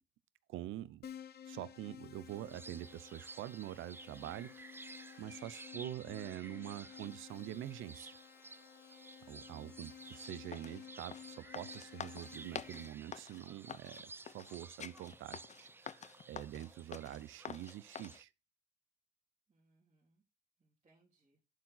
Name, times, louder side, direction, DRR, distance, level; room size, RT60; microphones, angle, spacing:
voice 1, 0.5-1.1 1.5-4.9 5.2-8.2 9.3-18.3, right 13 dB, 80° right, 0.6 m, -46 dB
Keyboard (musical), 1.0-12.9, left 9 dB, 55° left, 1.1 m, -54 dB
sound 1, 2.3-18.2, right 3 dB, 10° right, 0.3 m, -55 dB
voice 2, 9.7-10.2 19.5-20.2 20.6-21.4, right 2 dB, 35° right, 3.5 m, -74 dB
sound 2, 10.1-18.2, left 7 dB, 35° left, 0.7 m, -48 dB
11.5 x 4.7 x 4.0 m
cardioid pair, 90°, 20 cm